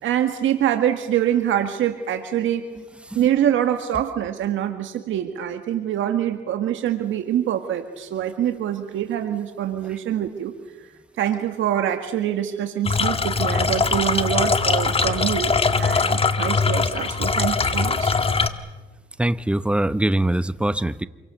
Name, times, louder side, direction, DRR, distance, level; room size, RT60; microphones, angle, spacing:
voice 1, 0.0-2.6 3.1-10.5 11.2-18.2, right 10 dB, 80° right, 6 dB, 1.8 m, -25 dB
sound 1, 12.8-18.5, left 4 dB, 30° left, 1.6 m, -21 dB
voice 2, 19.2-21.0, right 1 dB, 5° right, 14 dB, 0.8 m, -22 dB
27.5 x 23.5 x 6.9 m, 1.2 s
cardioid pair, 90°, 20 cm